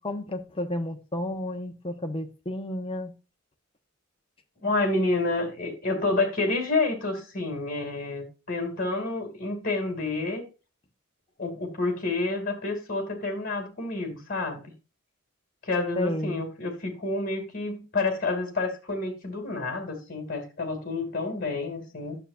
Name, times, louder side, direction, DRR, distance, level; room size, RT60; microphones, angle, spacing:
voice 1, 0.0-3.1 15.9-16.4, left 1 dB, 25° left, 1.0 m, -32 dB
voice 2, 4.6-10.4 11.4-14.6 15.6-22.2, left 2 dB, 40° left, 2.4 m, -29 dB
12.0 x 6.9 x 2.5 m
head